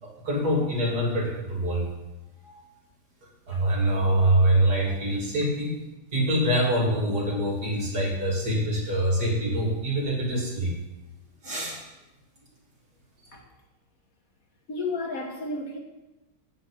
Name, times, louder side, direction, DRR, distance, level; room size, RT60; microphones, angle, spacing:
voice 1, 0.0-1.9 2.4-2.6 3.5-5.8 6.1-10.7 11.4-11.8 13.3-13.4, right 1 dB, 65° right, 3.6 m, -25 dB
voice 2, 14.7-15.8, left 3 dB, 55° left, 1.7 m, -32 dB
8.0 x 7.3 x 8.0 m
omnidirectional pair, 1.9 m